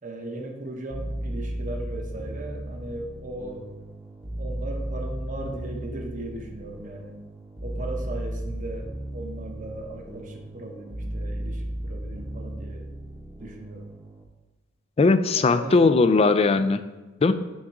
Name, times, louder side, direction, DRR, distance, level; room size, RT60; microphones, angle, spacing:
voice 1, 0.0-3.7 4.4-7.2 7.6-12.9 13.4-13.9 15.3-15.9, right 2 dB, 40° right, 2 dB, 0.8 m, -37 dB
sound 1, 0.9-14.2, right 1 dB, 5° right, 0.9 m, -35 dB
voice 2, 15.0-16.8 17.2-17.3, left 3 dB, 30° left, 11 dB, 0.3 m, -19 dB
6.3 x 3.7 x 5.8 m, 1.1 s
head